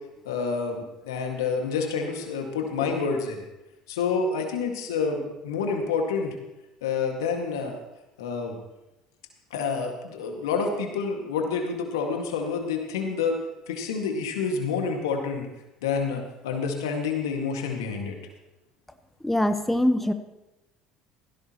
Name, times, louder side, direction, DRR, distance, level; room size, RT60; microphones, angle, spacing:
voice 1, 0.2-3.4 3.9-6.4 6.8-7.8 8.2-8.6 9.5-13.4 13.7-15.5 15.8-18.2, left 5 dB, 80° left, 3 dB, 2.0 m, -28 dB
voice 2, 19.2-20.1, left 1 dB, 5° left, 8 dB, 1.2 m, -23 dB
17.0 x 15.5 x 3.1 m, 0.97 s
hypercardioid pair, 65°, 2 cm